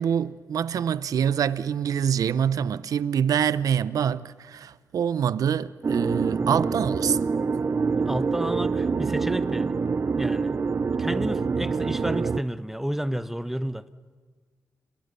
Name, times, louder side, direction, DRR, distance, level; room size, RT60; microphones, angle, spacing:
voice 1, 0.0-7.2, right 8 dB, 80° right, 0.7 m, -25 dB
sound 1, 5.8-12.4, right 5 dB, 45° right, 0.6 m, -26 dB
voice 2, 8.1-9.8 10.1-10.6 11.0-13.8, equal, 5° right, 0.9 m, -31 dB
29.0 x 22.5 x 6.9 m
cardioid pair, 75°, 6 cm